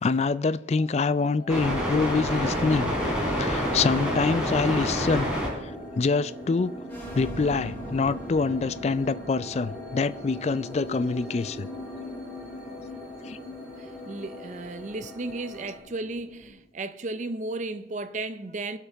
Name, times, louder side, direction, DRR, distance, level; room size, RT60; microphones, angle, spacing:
voice 1, 0.0-2.9 3.3-5.3 5.6-6.7 7.1-11.7 13.2-13.4, left 4 dB, 35° left, 0.3 m, -26 dB
sound 1, 0.7-15.8, equal, 5° right, 3.9 m, -32 dB
sound 2, 2.5-16.5, equal, 10° left, 4.5 m, -41 dB
voice 2, 13.8-18.8, right 2 dB, 40° right, 0.5 m, -34 dB
22.5 x 7.9 x 3.5 m
head